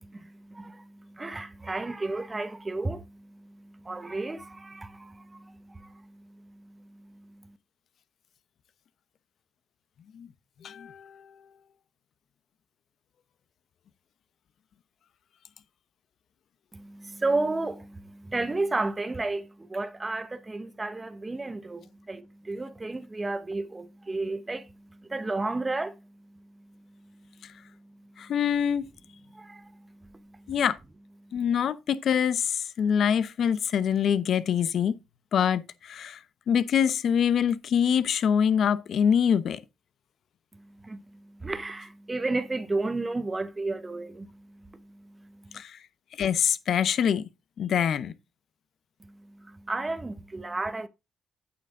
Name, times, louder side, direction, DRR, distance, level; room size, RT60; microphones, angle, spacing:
voice 1, 0.0-7.5 16.7-26.0 27.0-27.1 29.3-30.5 40.5-45.6 49.0-50.9, right 2 dB, 20° right, 1.1 m, -33 dB
voice 2, 10.6-11.2 28.2-28.9 30.5-30.8 31.3-35.0 35.3-36.2 36.5-39.6 45.5-45.8 46.2-47.2 47.6-48.1, left 8 dB, 65° left, 0.8 m, -25 dB
8.7 x 6.9 x 3.8 m
cardioid pair, 75°, 0 cm